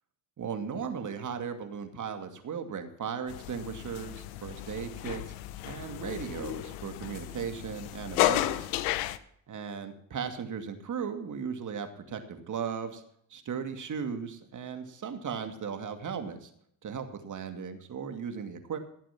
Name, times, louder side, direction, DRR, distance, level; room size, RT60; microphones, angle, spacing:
voice 1, 0.4-5.3 5.6-8.9 9.5-13.0 13.3-16.5 16.8-18.8, right 6 dB, 45° right, 7 dB, 2.4 m, -37 dB
sound 1, 3.3-9.2, left 15 dB, 90° left, 0.9 m, -33 dB
17.5 x 7.4 x 6.0 m, 0.67 s
supercardioid pair, 75°, 41 cm